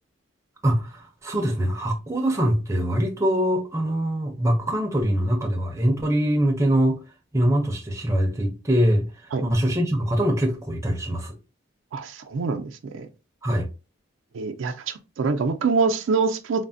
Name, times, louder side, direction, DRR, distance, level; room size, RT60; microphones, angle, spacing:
voice 1, 0.6-7.0 7.3-9.1 9.4-11.4 13.4-13.7, equal, 15° right, 0.5 m, -23 dB
voice 2, 11.9-13.1 14.3-16.6, right 4 dB, 85° right, 0.4 m, -25 dB
3.2 x 2.0 x 2.5 m
head